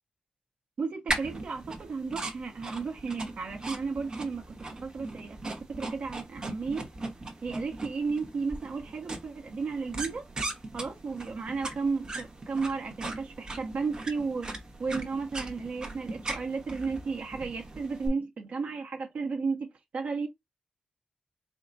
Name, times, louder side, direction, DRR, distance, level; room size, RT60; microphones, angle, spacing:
voice 1, 0.8-4.4 4.8-5.4 5.8-6.9 7.4-10.2 10.7-14.5 14.8-19.7 19.9-20.3, right 4 dB, 55° right, 0.9 m, -33 dB
sound 1, 1.1-18.1, right 2 dB, 30° right, 1.0 m, -39 dB
4.4 x 2.2 x 3.9 m
wide cardioid pair, 165°, 3 cm